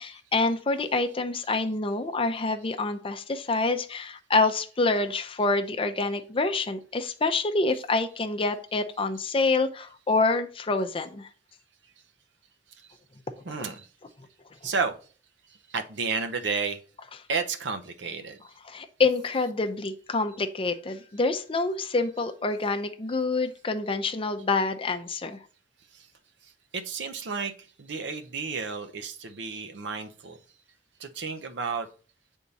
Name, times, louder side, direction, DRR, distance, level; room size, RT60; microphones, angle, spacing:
voice 1, 0.0-11.3 13.5-13.6 18.7-25.4, left 3 dB, 30° left, 6 dB, 0.6 m, -27 dB
voice 2, 13.4-13.9 14.6-15.0 15.7-16.8 17.3-18.4 25.9-26.1 26.7-27.5 27.8-30.4 31.0-31.9, right 5 dB, 75° right, 8 dB, 0.7 m, -31 dB
8.2 x 3.6 x 4.1 m, 0.40 s
head